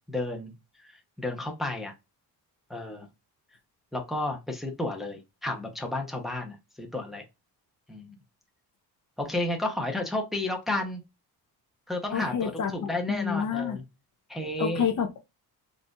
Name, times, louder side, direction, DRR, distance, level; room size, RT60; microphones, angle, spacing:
voice 1, 0.1-0.5 0.8-1.9 2.7-3.1 3.9-7.2 7.9-8.2 9.2-11.0 11.9-13.8 14.3-14.9, left 2 dB, ahead, 0.7 m, -32 dB
voice 2, 12.1-13.8 14.6-15.2, left 7 dB, 50° left, 0.7 m, -29 dB
4.0 x 2.5 x 2.3 m
cardioid pair, 130°, 39 cm